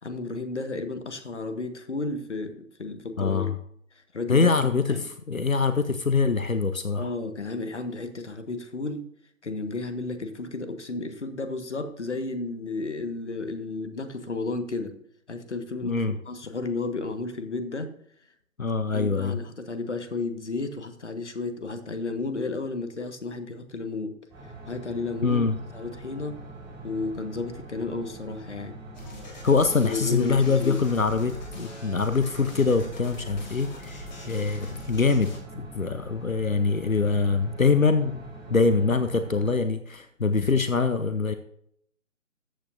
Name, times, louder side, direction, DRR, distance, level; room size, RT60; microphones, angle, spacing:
voice 1, 0.0-3.5 4.1-4.5 4.9-5.1 6.9-9.0 9.4-15.0 15.3-17.9 18.9-24.2 24.7-25.5 25.7-26.4 26.8-28.8 29.8-30.8, left 3 dB, 60° left, 9 dB, 1.5 m, -32 dB
voice 2, 3.2-3.6 4.3-7.1 15.8-16.1 18.6-19.4 25.2-25.6 29.4-38.2 38.5-41.4, left 4 dB, 90° left, 10 dB, 0.9 m, -24 dB
sound 1, 24.3-39.6, right 2 dB, 5° right, 4.2 m, -44 dB
sound 2, 28.9-35.4, left 1 dB, 35° left, 2.6 m, -42 dB
14.0 x 8.5 x 2.6 m, 0.69 s
figure-of-eight pair, 150°, 40 cm